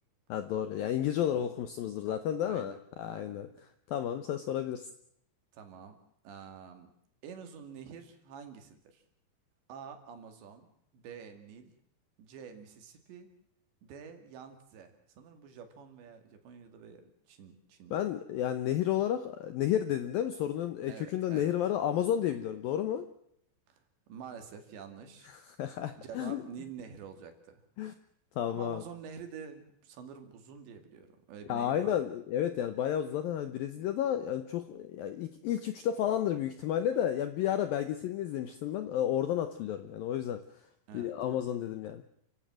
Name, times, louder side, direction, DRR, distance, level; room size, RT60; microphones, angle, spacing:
voice 1, 0.3-4.9 17.9-23.1 25.3-26.4 27.8-27.9 28.4-28.8 31.5-40.4 40.9-42.0, left 10 dB, 75° left, 10 dB, 2.1 m, -32 dB
voice 2, 2.1-3.5 5.5-6.0 6.2-6.9 7.2-9.0 9.7-10.7 10.9-11.7 12.2-13.3 13.8-18.0 20.9-21.5 23.7-25.3 26.0-27.6 28.5-32.0 40.9-41.1, right 7 dB, 70° right, 7 dB, 4.6 m, -48 dB
29.0 x 15.5 x 7.6 m, 0.72 s
omnidirectional pair, 5.3 m